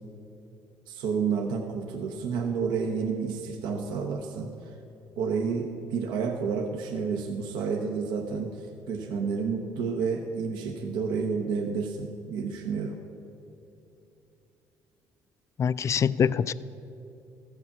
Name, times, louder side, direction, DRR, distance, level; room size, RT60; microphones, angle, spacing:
voice 1, 0.9-4.8 5.2-13.0, right 5 dB, 80° right, 2 dB, 0.9 m, -30 dB
voice 2, 15.6-16.5, left 7 dB, 40° left, 16 dB, 0.3 m, -24 dB
14.0 x 6.8 x 7.2 m, 2.9 s
supercardioid pair, 75°, 8 cm